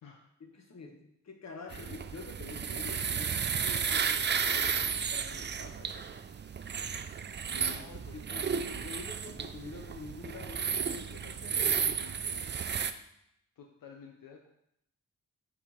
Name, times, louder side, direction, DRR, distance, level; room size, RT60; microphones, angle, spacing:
voice 1, 0.4-1.0 1.2-6.2 7.5-7.7 8.1-12.5, left 3 dB, 50° left, 3 dB, 1.3 m, -47 dB
sound 1, 1.7-12.9, right 6 dB, 35° right, 0.4 m, -33 dB
voice 2, 7.5-8.8 13.6-14.5, left 6 dB, 75° left, 2 dB, 0.8 m, -52 dB
7.4 x 4.0 x 4.3 m, 0.79 s
cardioid pair, 80°, 33 cm